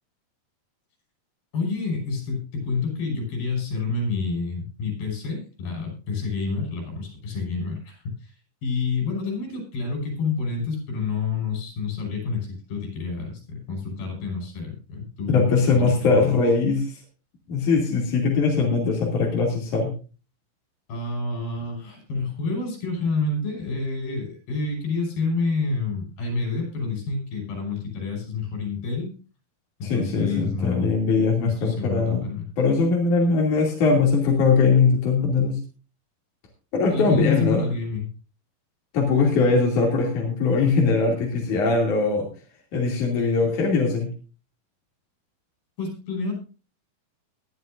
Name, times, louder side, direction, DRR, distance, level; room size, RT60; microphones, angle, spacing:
voice 1, 1.5-16.4 20.9-29.1 29.8-30.9 31.4-32.5 36.9-38.1 43.2-43.3 45.8-46.3, left 4 dB, 80° left, 2 dB, 7.6 m, -28 dB
voice 2, 15.3-16.9 17.5-19.9 29.8-32.2 32.6-35.6 36.7-37.6 38.9-42.3 42.7-44.1, left 4 dB, 55° left, -1 dB, 4.0 m, -21 dB
21.0 x 11.0 x 2.6 m, 0.35 s
omnidirectional pair, 4.2 m